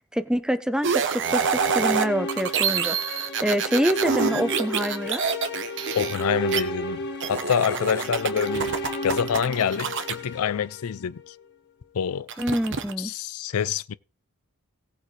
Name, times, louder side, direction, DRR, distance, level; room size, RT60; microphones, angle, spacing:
voice 1, 0.1-3.0 3.4-5.2 12.4-13.1, equal, 5° right, 0.7 m, -26 dB
sound 1, 0.8-6.6 7.2-10.2 12.3-12.9, right 6 dB, 55° right, 1.0 m, -27 dB
sound 2, 1.1-11.3, right 1 dB, 50° left, 1.7 m, -33 dB
voice 2, 5.9-8.8 9.0-11.3 11.9-12.3 13.0-14.0, left 8 dB, 70° left, 0.4 m, -26 dB
17.5 x 8.2 x 3.2 m
head